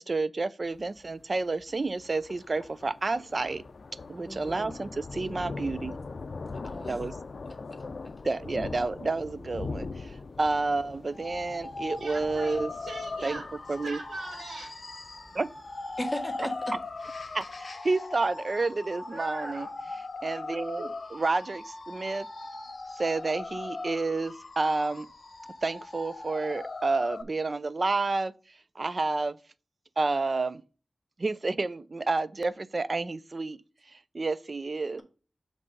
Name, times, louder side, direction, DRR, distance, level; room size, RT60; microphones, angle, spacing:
voice 1, 0.0-3.6 4.1-6.0 6.9-7.1 8.2-12.7 13.2-13.4 13.7-14.0 15.3-15.5 17.3-19.7 20.2-22.3 23.0-25.1 25.6-28.3 28.8-29.4 30.0-30.6 31.2-33.6 33.9-35.0, right 3 dB, 50° right, 0.4 m, -30 dB
Thunder, 0.7-17.6, left 4 dB, 65° left, 0.4 m, -42 dB
voice 2, 4.2-4.8 6.5-7.0 8.5-8.6 16.0-16.8, equal, 5° left, 1.7 m, -36 dB
sound 1, 11.1-27.2, left 3 dB, 50° left, 1.1 m, -39 dB
voice 3, 12.0-14.8 19.1-19.8 20.8-20.9, right 2 dB, 85° right, 2.1 m, -41 dB
7.6 x 3.3 x 5.3 m
wide cardioid pair, 85°, 0 cm